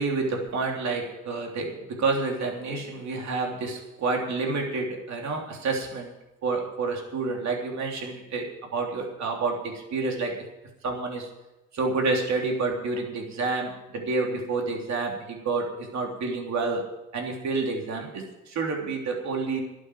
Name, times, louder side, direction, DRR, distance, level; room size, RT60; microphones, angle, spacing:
voice 1, 0.0-6.1 6.4-10.4 10.8-11.3 11.7-19.6, right 3 dB, 65° right, 1 dB, 3.3 m, -29 dB
12.5 x 8.8 x 8.7 m, 0.99 s
cardioid pair, 90°, 30 cm